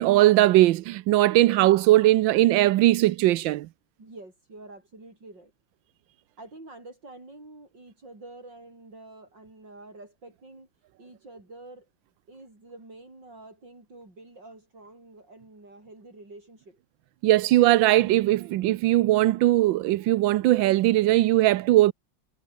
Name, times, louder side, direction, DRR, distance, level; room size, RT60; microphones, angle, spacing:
voice 1, 0.0-3.7 17.2-21.9, right 15 dB, 90° right, 1.4 m, -20 dB
voice 2, 4.0-5.5 6.4-10.7 11.0-11.9 12.3-16.8, right 2 dB, 70° right, 8.9 m, -47 dB
omnidirectional pair, 2.0 m